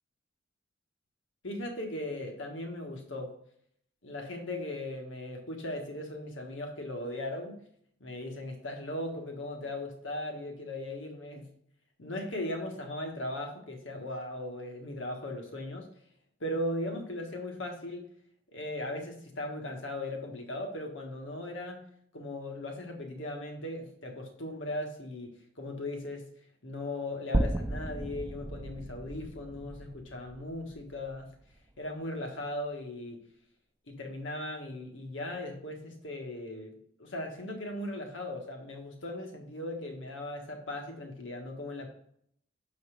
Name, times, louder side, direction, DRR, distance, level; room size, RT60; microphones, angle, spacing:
voice 1, 1.4-3.3 4.0-7.6 8.0-11.6 12.0-15.9 16.4-18.1 18.5-21.8 22.1-26.3 26.6-31.4 31.8-33.2 33.9-41.9, left 1 dB, 90° left, 2 dB, 1.4 m, -38 dB
sound 1, 27.3-31.6, right 1 dB, 10° right, 0.3 m, -34 dB
6.7 x 4.1 x 6.3 m, 0.67 s
head